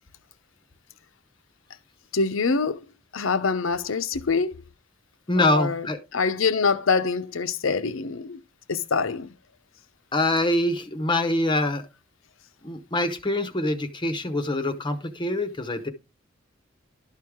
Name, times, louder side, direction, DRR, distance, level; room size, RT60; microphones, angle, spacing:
voice 1, 2.1-2.8 3.1-4.5 5.4-5.9 6.1-8.4 8.7-9.3, left 4 dB, 80° left, 0.7 m, -25 dB
voice 2, 5.3-6.0 10.1-11.8 12.6-15.9, left 1 dB, 25° left, 0.7 m, -24 dB
12.0 x 4.6 x 3.6 m
head